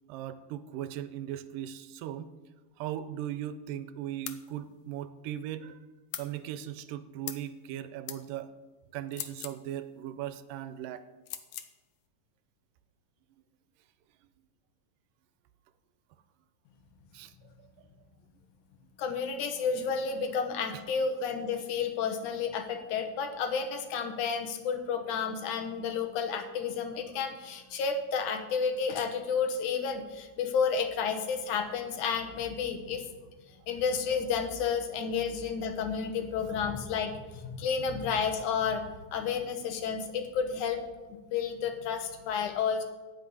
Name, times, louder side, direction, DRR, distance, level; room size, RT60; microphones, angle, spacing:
voice 1, 0.1-2.3 2.8-5.8 6.2-8.5 8.9-11.1 17.1-17.3 19.6-19.7 20.7-20.8, right 11 dB, 90° right, 13 dB, 2.3 m, -38 dB
sound 1, 4.3-4.4 6.1-6.3 7.3-7.5 8.1-8.2 9.1-9.6 11.3-11.7, left 11 dB, 90° left, 1.3 m, -40 dB
voice 2, 19.0-33.0 33.7-38.8 39.1-40.8 41.1-42.8, left 6 dB, 70° left, 7 dB, 2.4 m, -31 dB
14.5 x 5.6 x 9.5 m, 1.2 s
omnidirectional pair, 3.8 m